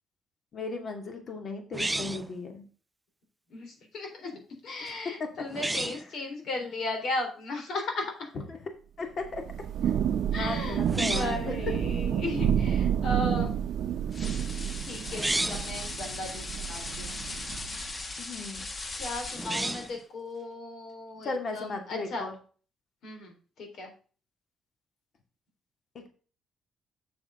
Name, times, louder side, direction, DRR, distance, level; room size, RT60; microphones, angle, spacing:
voice 1, 0.5-2.6 4.8-5.5 6.0-6.1 8.5-8.6 9.0-9.5 9.8-9.9 10.4-11.8 18.2-18.7 21.2-22.3 25.9-26.1, left 3 dB, 50° left, 5 dB, 2.4 m, -36 dB
sound 1, 1.7-2.3 5.5-6.0 10.8-11.5 15.1-15.7 19.3-20.0, right 2 dB, 10° right, 0.3 m, -31 dB
voice 2, 3.5-8.3 10.3-13.6 14.8-17.2 19.0-22.3 23.0-23.9, left 2 dB, 70° left, 4 dB, 3.6 m, -36 dB
Thunder / Rain, 9.2-17.8, right 9 dB, 75° right, 0.7 m, -30 dB
sound 2, 14.1-20.0, left 3 dB, 35° left, 1.5 m, -39 dB
8.0 x 7.1 x 3.7 m, 0.38 s
cardioid pair, 90°, 0 cm